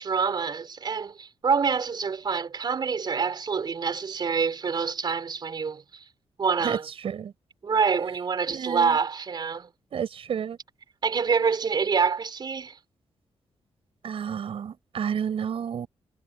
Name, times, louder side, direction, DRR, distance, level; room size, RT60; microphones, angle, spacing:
voice 1, 0.0-6.1 6.4-6.8 7.6-9.7 11.0-12.8, right 5 dB, 45° right, 4.5 m, -26 dB
voice 2, 8.5-9.0 9.9-10.6 14.0-15.9, right 8 dB, 65° right, 6.6 m, -30 dB
cardioid pair, 115°, 10 cm